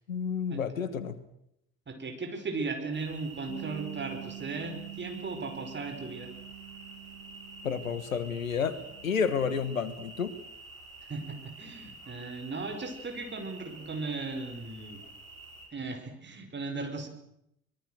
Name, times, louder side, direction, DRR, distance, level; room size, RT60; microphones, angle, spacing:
voice 1, 0.1-1.2 7.6-8.8 9.0-10.3, left 6 dB, 80° left, 15 dB, 1.5 m, -30 dB
voice 2, 1.9-6.3 11.1-15.0 15.7-17.1, right 3 dB, 25° right, 7 dB, 5.3 m, -37 dB
sound 1, 2.9-15.7, right 2 dB, 85° right, 4.8 m, -49 dB
Bass guitar, 3.5-8.2 8.5-9.7, right 15 dB, 70° right, 1.1 m, -46 dB
25.0 x 21.5 x 6.5 m, 0.78 s
figure-of-eight pair, 55°, 40 cm